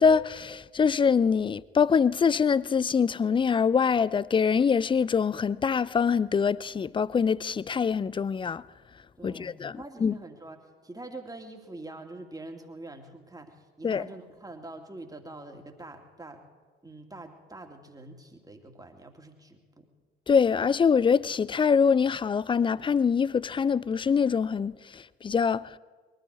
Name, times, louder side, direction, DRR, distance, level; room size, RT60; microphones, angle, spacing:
voice 1, 0.0-8.6 9.2-10.2 13.8-14.1 20.3-25.7, left 6 dB, 15° left, 0.4 m, -24 dB
voice 2, 9.2-16.4 16.8-19.9, right 2 dB, 10° right, 2.5 m, -45 dB
22.5 x 13.0 x 4.9 m
figure-of-eight pair, 50°, 31 cm